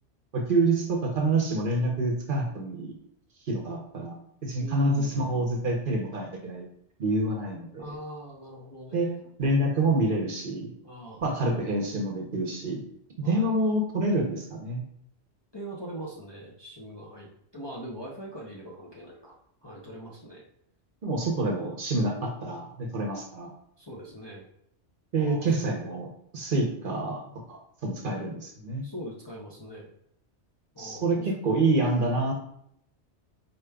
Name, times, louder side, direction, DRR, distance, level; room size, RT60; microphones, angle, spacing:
voice 1, 0.3-2.9 3.5-4.1 4.4-6.7 7.0-7.9 8.9-9.1 9.4-10.7 11.2-12.8 13.2-14.8 21.0-23.5 25.1-26.1 26.3-27.2 27.5-28.8 30.8-32.3, right 2 dB, 50° right, 1 dB, 0.9 m, -27 dB
voice 2, 4.6-5.5 7.7-9.3 10.8-11.8 13.2-13.5 15.5-17.3 17.5-19.4 19.6-20.4 23.8-24.4 25.1-25.5 25.8-26.1 28.8-29.9 30.7-31.6, right 1 dB, 25° left, -4 dB, 0.6 m, -42 dB
5.0 x 4.3 x 2.2 m, 0.71 s
omnidirectional pair, 1.2 m